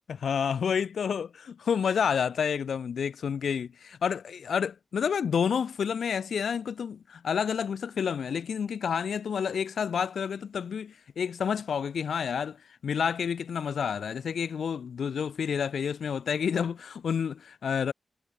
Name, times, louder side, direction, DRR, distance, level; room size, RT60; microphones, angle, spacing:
voice 1, 0.1-12.6 12.8-17.9, left 7 dB, 80° left, 6.2 m, -29 dB
cardioid pair, 75°, 0 cm